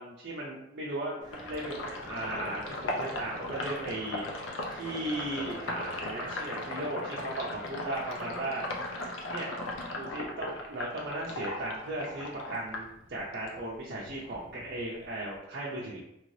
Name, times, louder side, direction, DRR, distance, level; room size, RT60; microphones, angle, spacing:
voice 1, 0.0-4.2 4.7-8.7 9.3-9.5 9.9-16.0, right 1 dB, 50° right, -6 dB, 0.5 m, -37 dB
sound 1, 1.2-6.4, right 1 dB, 20° right, 1.2 m, -49 dB
Sink (filling or washing), 1.3-13.6 13.9-15.4, left 1 dB, 85° left, 0.6 m, -38 dB
2.9 x 2.7 x 3.1 m, 0.85 s
head